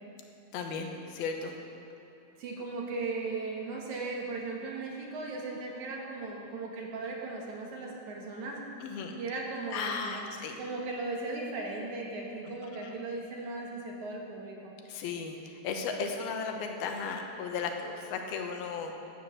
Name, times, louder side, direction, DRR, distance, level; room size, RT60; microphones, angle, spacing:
voice 1, 0.5-1.6 8.8-9.1 9.7-10.6 12.5-12.6 12.8-12.9 14.9-19.0, left 5 dB, 80° left, 3 dB, 2.9 m, -35 dB
voice 2, 2.4-8.6 9.2-10.2 10.6-14.7, right 3 dB, 55° right, -1 dB, 2.7 m, -37 dB
14.0 x 8.9 x 6.5 m, 2.7 s
omnidirectional pair, 4.5 m